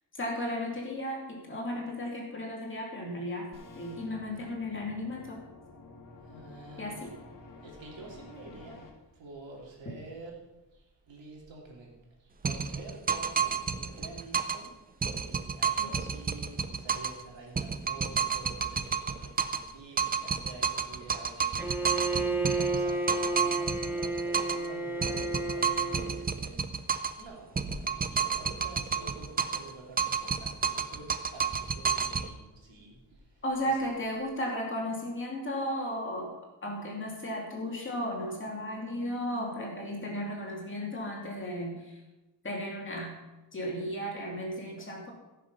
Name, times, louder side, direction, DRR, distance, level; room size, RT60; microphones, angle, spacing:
voice 1, 0.1-5.4 6.8-7.1 15.8-15.9 33.4-36.4 36.6-42.0 42.4-43.1 43.5-45.1, equal, 25° left, -1 dB, 2.6 m, -35 dB
sound 1, 3.5-8.9, left 3 dB, 45° left, 2.2 m, -50 dB
voice 2, 6.2-7.1 7.6-8.9 9.1-10.4 10.7-11.9 12.2-33.7, right 2 dB, 80° right, -1 dB, 3.1 m, -48 dB
sound 2, 12.4-14.7 15.0-17.2 17.6-19.7 20.0-24.7 25.0-27.2 27.6-29.7 30.0-32.3, right 6 dB, 20° right, 0.4 m, -30 dB
Bowed string instrument, 21.6-26.3, right 2 dB, 5° right, 0.9 m, -32 dB
15.5 x 6.8 x 5.5 m, 1.1 s
wide cardioid pair, 175°, 44 cm